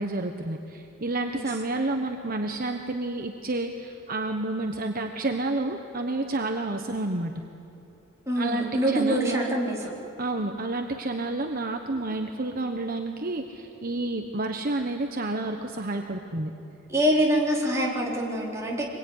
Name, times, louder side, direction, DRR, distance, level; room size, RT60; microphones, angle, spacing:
voice 1, 0.0-7.3 8.4-9.4 10.2-16.5, right 2 dB, 45° right, 4 dB, 1.2 m, -30 dB
voice 2, 8.3-9.9 16.9-18.8, right 1 dB, 15° right, -3 dB, 3.9 m, -25 dB
25.5 x 21.5 x 9.6 m, 2.9 s
head